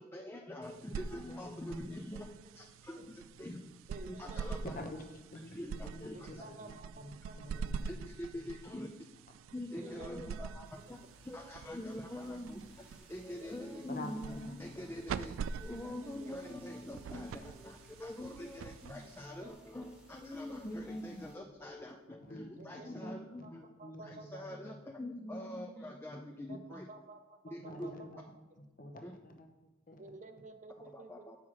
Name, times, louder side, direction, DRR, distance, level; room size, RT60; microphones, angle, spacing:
voice 1, 0.0-2.3 2.5-3.6 4.1-4.6 5.5-6.4 7.9-8.9 9.5-11.0 11.2-23.6 24.0-26.9 27.5-27.9 29.0-29.1 30.9-31.4, left 1 dB, 10° left, 2 dB, 0.5 m, -44 dB
sound 1, 0.6-19.5, right 6 dB, 90° right, 0.3 m, -45 dB
voice 2, 1.8-2.2 3.0-3.1 3.9-4.6 6.1-7.7 9.8-10.7 13.3-13.7 15.6-16.3 19.4-19.5 19.8-19.9 22.6-23.1 23.4-23.5 23.8-24.4 26.5-28.2 30.0-31.3, right 2 dB, 40° right, 7 dB, 0.6 m, -53 dB
voice 3, 5.3-8.0 13.9-14.7 22.1-24.8 27.6-28.2 28.6-29.5 29.9-30.0, left 1 dB, 45° left, 5 dB, 0.9 m, -48 dB
sound 2, 10.6-21.4, equal, 5° right, 1.2 m, -62 dB
7.4 x 5.7 x 4.7 m, 1.1 s
head